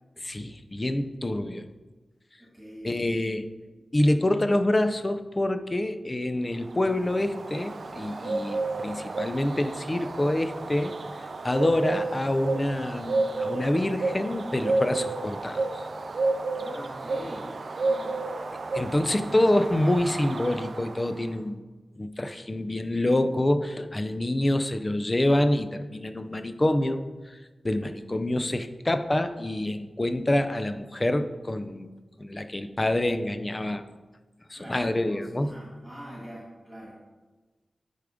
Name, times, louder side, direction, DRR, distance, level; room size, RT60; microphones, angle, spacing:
voice 1, 0.2-1.7 2.8-3.5 3.9-15.9 18.7-21.6 21.9-27.4 27.6-31.9 32.2-33.8 34.5-35.5, left 1 dB, 25° left, 9 dB, 0.4 m, -26 dB
voice 2, 2.4-3.2 16.5-18.2 34.5-37.0, equal, 20° right, -5 dB, 1.7 m, -43 dB
Bird, 6.6-21.3, right 3 dB, 60° right, 0.4 m, -31 dB
10.0 x 3.6 x 5.0 m, 1.2 s
wide cardioid pair, 115°, 0 cm